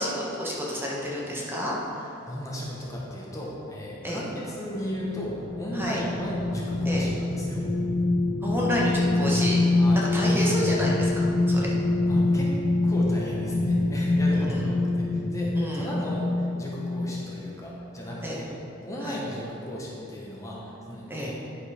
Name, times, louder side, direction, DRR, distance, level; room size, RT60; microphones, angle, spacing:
voice 1, 0.0-2.1 4.0-4.2 5.7-6.0 6.8-7.0 8.4-9.6 10.1-11.7 14.3-14.7 15.5-15.9 18.2-18.4 19.0-19.2 21.1-21.3, equal, 10° right, -4 dB, 1.2 m, -30 dB
voice 2, 2.3-7.6 9.8-10.1 12.1-12.5 12.8-18.5 18.8-21.3, equal, 15° left, -4 dB, 1.1 m, -35 dB
sound 1, 4.6-17.5 17.9-18.1, left 2 dB, 40° left, 1.4 m, -25 dB
10.5 x 5.3 x 5.0 m, 2.9 s
head